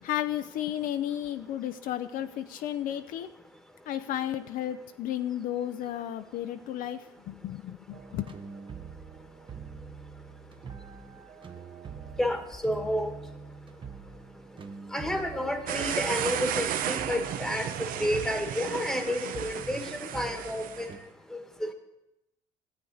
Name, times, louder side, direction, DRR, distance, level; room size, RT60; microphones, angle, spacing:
voice 1, 0.0-3.3 3.9-8.3, left 11 dB, 65° left, 9 dB, 0.5 m, -33 dB
sound 1, 7.9-21.0, right 6 dB, 35° right, 0.9 m, -45 dB
voice 2, 12.2-13.1 14.9-20.9 21.3-21.7, left 1 dB, 5° left, 6 dB, 1.3 m, -30 dB
sound 2, 15.7-20.9, right 10 dB, 65° right, 0.7 m, -33 dB
13.5 x 8.3 x 3.9 m, 0.90 s
supercardioid pair, 85°, 16 cm